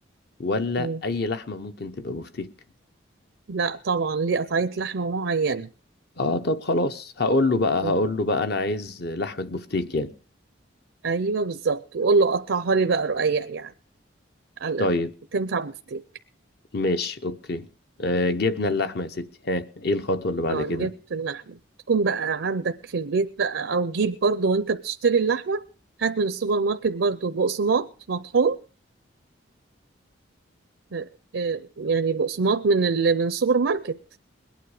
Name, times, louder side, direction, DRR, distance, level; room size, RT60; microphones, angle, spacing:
voice 1, 0.4-2.5 6.2-10.1 14.8-15.1 16.7-17.7 18.0-20.9, left 2 dB, 55° left, 0.9 m, -26 dB
voice 2, 3.5-5.7 7.8-8.1 11.0-13.7 14.6-14.9 15.3-16.0 20.5-21.6 21.9-25.6 26.0-28.6 30.9-31.1 31.3-34.0, right 4 dB, 70° right, 0.6 m, -24 dB
21.5 x 9.3 x 4.9 m
head